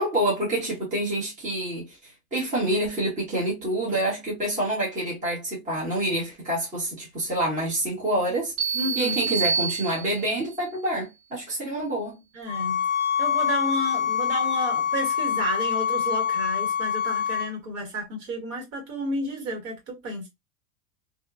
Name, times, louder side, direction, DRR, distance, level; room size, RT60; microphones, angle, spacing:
voice 1, 0.0-12.2, right 1 dB, 15° right, 1.3 m, -27 dB
sound 1, 8.6-10.4, right 6 dB, 40° right, 1.5 m, -27 dB
voice 2, 8.7-9.3 12.3-12.9 13.2-20.3, equal, 60° right, 1.8 m, -31 dB
sound 2, 12.5-17.5, left 8 dB, 25° left, 0.8 m, -25 dB
2.9 x 2.3 x 2.4 m
supercardioid pair, 150°, 43 cm